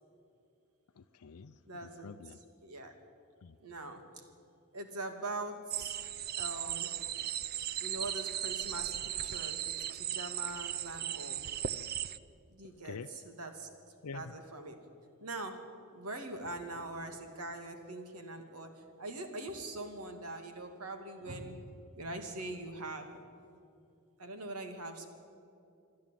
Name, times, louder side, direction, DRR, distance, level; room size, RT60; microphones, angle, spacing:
voice 1, 0.9-2.4 3.4-3.6 12.8-13.1 14.0-14.3, left 5 dB, 80° left, 10 dB, 0.6 m, -47 dB
voice 2, 1.7-2.1 2.6-2.9 3.6-4.3 4.7-6.0 6.4-6.9 7.8-11.4 12.5-13.0 13.4-13.7 14.1-14.8 15.2-15.6 15.9-23.1 24.2-25.1, right 2 dB, 90° right, 6 dB, 2.5 m, -42 dB
sound 1, 5.7-12.2, right 10 dB, 45° right, 0.5 m, -37 dB
27.0 x 11.5 x 9.2 m, 2.6 s
head